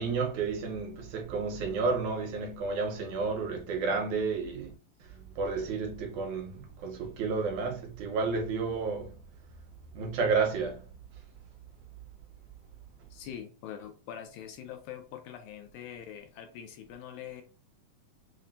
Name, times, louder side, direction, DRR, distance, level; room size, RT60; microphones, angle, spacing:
voice 1, 0.0-4.7 5.1-9.2 9.9-10.8, right 4 dB, 75° right, 2.0 m, -31 dB
voice 2, 13.1-17.4, left 9 dB, 80° left, 1.9 m, -43 dB
5.9 x 2.0 x 2.6 m
omnidirectional pair, 3.5 m